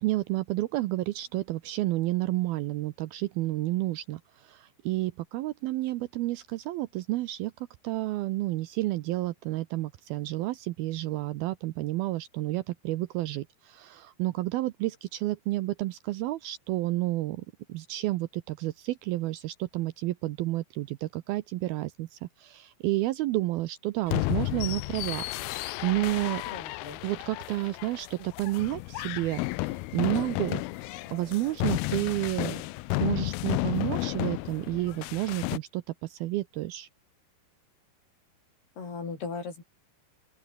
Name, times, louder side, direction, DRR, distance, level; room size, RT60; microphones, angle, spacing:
voice 1, 0.0-7.5 7.8-26.4 27.0-32.6 32.9-36.9, right 17 dB, 80° right, 2.3 m, -31 dB
sound 1, 24.1-35.6, left 19 dB, 80° left, 2.3 m, -32 dB
voice 2, 26.5-27.0 38.8-39.6, left 4 dB, 65° left, 8.8 m, -37 dB
open air
omnidirectional pair, 5.0 m